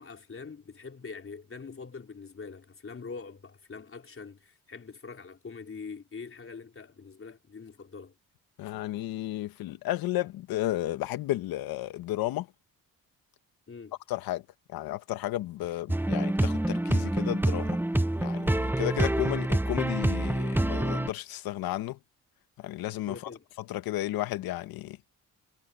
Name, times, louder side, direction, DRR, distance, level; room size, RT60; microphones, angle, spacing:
voice 1, 0.0-8.1 13.7-14.0 23.1-23.4, left 5 dB, 35° left, 3.6 m, -43 dB
voice 2, 8.6-12.5 14.1-14.4 14.7-17.8 18.2-22.0 22.6-23.1 23.7-25.0, left 15 dB, 80° left, 1.7 m, -33 dB
sound 1, 15.9-21.1, right 1 dB, 5° right, 1.1 m, -27 dB
supercardioid pair, 60°, 35 cm